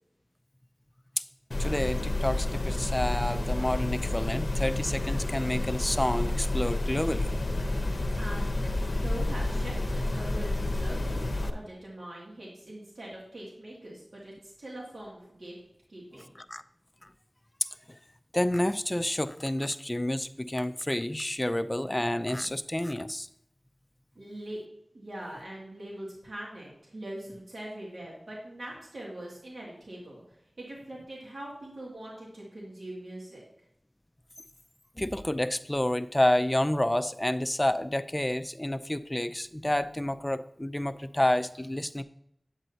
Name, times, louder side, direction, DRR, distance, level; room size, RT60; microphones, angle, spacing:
sound 1, 1.5-11.5, left 2 dB, 65° left, 0.7 m, -29 dB
voice 1, 1.6-7.3 16.2-16.6 17.6-18.0 18.3-23.3 35.0-42.0, left 1 dB, 20° left, 11 dB, 0.4 m, -29 dB
voice 2, 8.2-15.5 15.9-16.3 24.1-24.6 24.9-33.4, right 1 dB, 85° right, -5 dB, 2.3 m, -42 dB
8.9 x 7.7 x 2.8 m, 0.75 s
wide cardioid pair, 55°, 0 cm